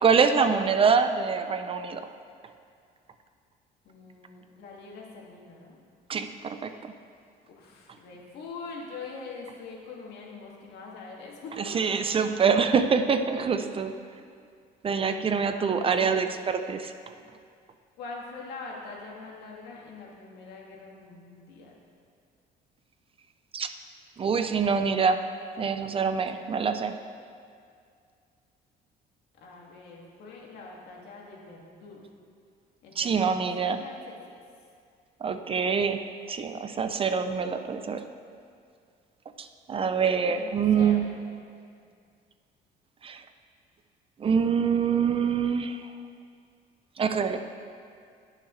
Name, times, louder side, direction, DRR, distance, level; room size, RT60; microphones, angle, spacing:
voice 1, 0.0-2.1 6.1-6.9 11.7-13.9 14.8-16.9 23.5-23.7 24.2-25.2 25.6-27.0 33.0-33.8 35.2-36.0 36.3-38.0 39.4-41.1 43.0-43.2 44.2-45.9 47.0-47.4, right 6 dB, 35° right, 8 dB, 0.5 m, -25 dB
voice 2, 3.8-5.8 7.5-12.1 13.6-13.9 15.4-16.3 17.2-17.3 18.0-21.7 29.4-32.0 32.8-34.2 36.9-37.4 40.3-41.2, left 4 dB, 75° left, -3 dB, 2.2 m, -44 dB
19.5 x 6.5 x 3.3 m, 2.3 s
cardioid pair, 110°, 17 cm